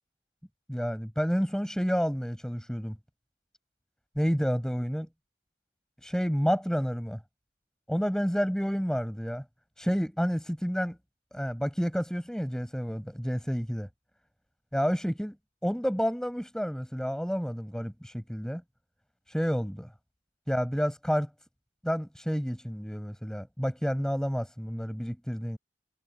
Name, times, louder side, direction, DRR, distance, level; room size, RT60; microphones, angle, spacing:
voice 1, 0.7-3.0 4.1-5.1 6.0-7.2 7.9-9.4 9.8-11.0 11.3-13.9 14.7-15.3 15.6-18.6 19.3-19.9 20.5-21.3 21.8-25.6, equal, 5° left, 6.8 m, -29 dB
head